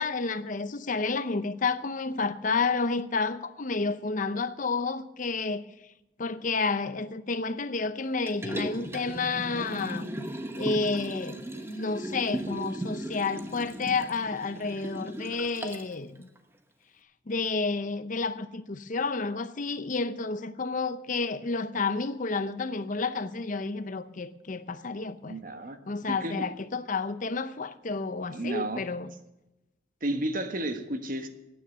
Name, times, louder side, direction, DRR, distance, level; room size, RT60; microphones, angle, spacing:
voice 1, 0.0-5.6 6.2-10.1 10.6-16.3 17.3-25.4 25.9-29.1, left 4 dB, 45° left, 12 dB, 0.7 m, -30 dB
Liquid, 8.3-15.9 16.4-16.5, right 1 dB, 15° right, 1.0 m, -37 dB
voice 2, 25.2-25.8 26.1-26.5 28.3-28.8 30.0-31.3, right 1 dB, 50° right, 7 dB, 1.3 m, -32 dB
15.0 x 9.5 x 6.7 m, 0.94 s
head